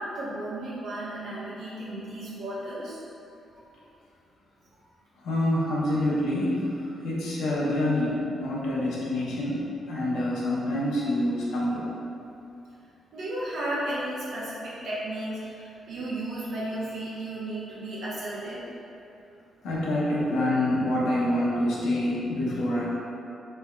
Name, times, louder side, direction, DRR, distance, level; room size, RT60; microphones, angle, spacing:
voice 1, 0.0-3.0 3.5-3.6 13.1-18.7, right 1 dB, 70° right, -7 dB, 0.9 m, -34 dB
voice 2, 5.2-6.7 7.0-12.0 19.6-22.9, left 1 dB, 85° left, -6 dB, 0.8 m, -26 dB
3.5 x 3.3 x 2.2 m, 2.7 s
cardioid pair, 70°, 0 cm